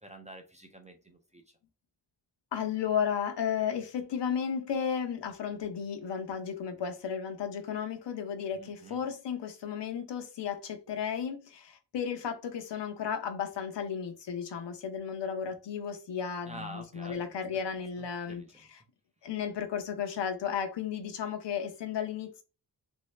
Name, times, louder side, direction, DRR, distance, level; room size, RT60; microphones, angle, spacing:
voice 1, 0.0-1.6 8.5-9.0 16.5-17.7 18.0-18.6, right 1 dB, 20° right, 0.3 m, -48 dB
voice 2, 2.5-18.4 18.7-18.8 19.2-22.4, left 7 dB, 75° left, 0.8 m, -34 dB
3.2 x 2.7 x 3.1 m
wide cardioid pair, 180°, 42 cm